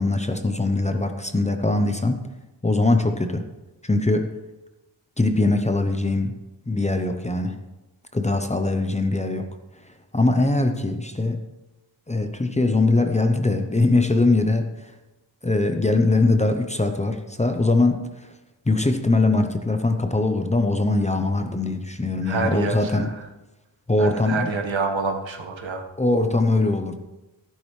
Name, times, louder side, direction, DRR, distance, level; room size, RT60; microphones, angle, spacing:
voice 1, 0.0-2.2 2.6-3.4 3.8-4.3 5.2-6.3 6.7-7.6 8.1-9.5 10.1-11.4 12.1-14.7 15.4-18.0 18.7-23.1 23.9-24.5 26.0-27.0, left 2 dB, 15° left, 6 dB, 0.7 m, -21 dB
voice 2, 22.3-23.1 24.0-25.8, right 4 dB, 80° right, 3 dB, 1.5 m, -27 dB
13.5 x 12.0 x 3.2 m, 1.0 s
wide cardioid pair, 150°, 46 cm